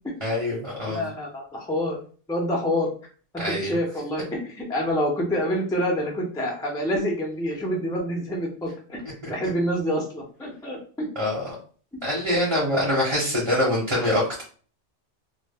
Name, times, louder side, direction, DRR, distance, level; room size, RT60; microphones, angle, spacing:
voice 1, 0.2-1.0 3.4-3.7 11.1-11.5 12.0-14.4, left 1 dB, 30° right, -6 dB, 0.8 m, -24 dB
voice 2, 0.9-2.0 2.3-2.9 3.3-9.0 9.3-11.1, equal, 5° left, -1 dB, 0.3 m, -27 dB
2.1 x 2.1 x 3.3 m, 0.41 s
omnidirectional pair, 1.2 m